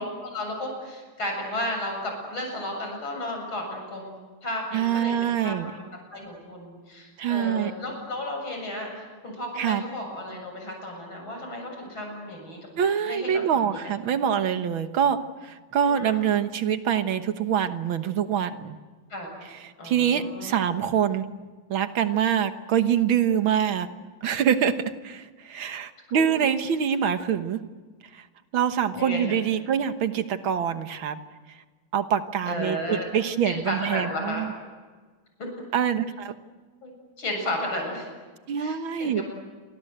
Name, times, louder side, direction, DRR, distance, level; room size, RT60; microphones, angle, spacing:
voice 1, 0.0-5.8 6.1-12.6 13.0-13.9 15.8-16.4 19.1-19.3 19.8-20.6 26.1-26.5 28.9-29.4 32.5-33.1 33.4-34.5 35.4-35.5 36.8-38.1 38.6-39.2, left 1 dB, 80° left, 2 dB, 8.4 m, -33 dB
voice 2, 4.7-5.7 7.2-7.7 9.6-9.9 12.8-18.8 19.8-21.2 21.7-23.9 24.2-24.8 25.0-27.6 28.1-28.2 28.5-31.2 31.9-34.5 35.7-36.4 38.5-39.2, right 8 dB, 85° right, 9 dB, 2.1 m, -25 dB
29.0 x 24.5 x 8.0 m, 1.4 s
omnidirectional pair, 2.2 m